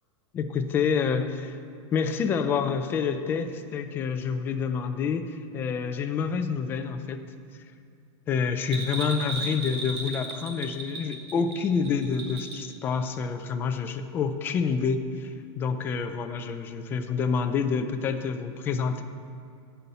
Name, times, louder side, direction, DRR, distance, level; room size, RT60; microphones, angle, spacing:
voice 1, 0.3-1.6 1.9-7.2 8.3-19.0, left 6 dB, 15° left, 7 dB, 0.4 m, -28 dB
Bell, 8.6-12.7 13.0-13.1, right 3 dB, 55° right, 1.9 m, -36 dB
9.4 x 5.6 x 8.2 m, 2.4 s
supercardioid pair, 165°, 16 cm